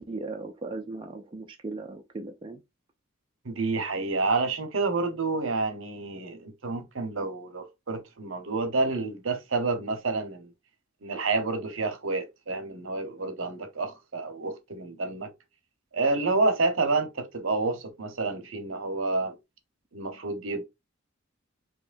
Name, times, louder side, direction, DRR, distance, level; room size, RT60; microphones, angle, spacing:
voice 1, 0.0-2.6, right 3 dB, 25° right, 0.4 m, -37 dB
voice 2, 3.4-10.5 11.0-15.3 15.9-19.3 19.9-20.7, right 3 dB, 65° right, 0.9 m, -29 dB
4.8 x 2.9 x 2.5 m
head